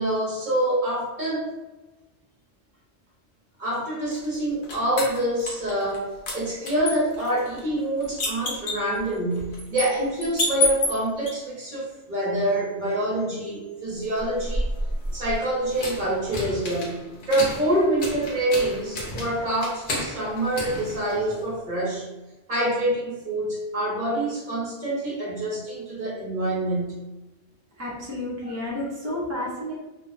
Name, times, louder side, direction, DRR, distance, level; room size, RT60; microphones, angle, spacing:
voice 1, 0.0-1.5 3.6-14.6 15.1-22.1 22.5-26.9, right 1 dB, 45° right, -6 dB, 0.8 m, -26 dB
sound 1, 4.1-6.0 6.3-11.3 14.1-21.6, left 2 dB, 70° left, 0.9 m, -31 dB
voice 2, 27.8-29.7, left 1 dB, 20° right, -6 dB, 0.5 m, -31 dB
2.5 x 2.1 x 2.4 m, 1.1 s
omnidirectional pair, 1.2 m